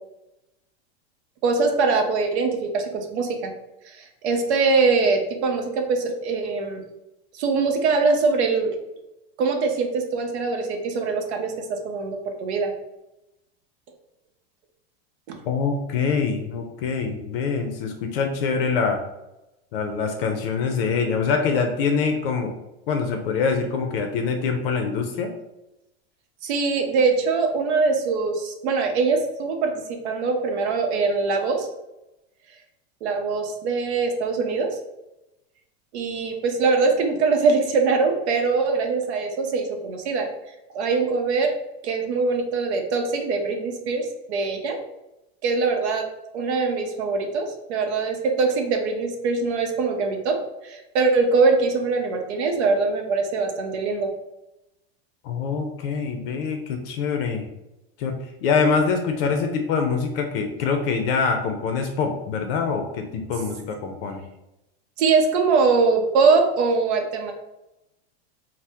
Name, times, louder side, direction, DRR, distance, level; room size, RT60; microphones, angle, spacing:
voice 1, 1.4-3.5 3.9-6.8 7.3-8.7 9.4-12.7 15.3-15.4 26.4-31.7 33.0-34.7 35.9-40.3 40.7-41.5 41.8-44.8 45.4-46.0 46.3-50.4 50.6-54.1 65.0-67.3, right 4 dB, 80° right, 3 dB, 0.6 m, -22 dB
voice 2, 15.5-19.0 19.7-22.5 22.9-25.3 55.2-57.5 58.0-64.2, left 5 dB, 60° left, 4 dB, 0.5 m, -24 dB
2.7 x 2.0 x 3.3 m, 0.92 s
supercardioid pair, 155°, 33 cm